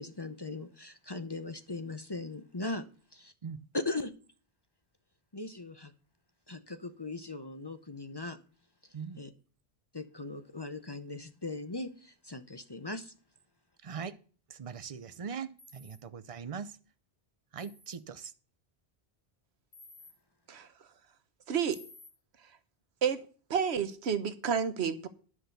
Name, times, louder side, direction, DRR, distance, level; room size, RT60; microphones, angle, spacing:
voice 1, 0.0-2.8 3.1-3.3 3.7-4.1 5.3-5.9 6.5-8.4 9.2-9.3 9.9-13.1, left 2 dB, 25° left, 0.7 m, -39 dB
voice 2, 13.8-14.2 14.5-16.8 17.5-18.3, right 6 dB, 40° right, 0.6 m, -41 dB
sound 1, 15.6-16.0 17.6-18.0 19.7-20.1 21.7-22.1, left 2 dB, 45° left, 4.6 m, -54 dB
voice 3, 21.5-21.8 23.0-23.2 23.5-25.1, right 7 dB, 90° right, 1.2 m, -30 dB
10.5 x 6.1 x 6.7 m
omnidirectional pair, 1.1 m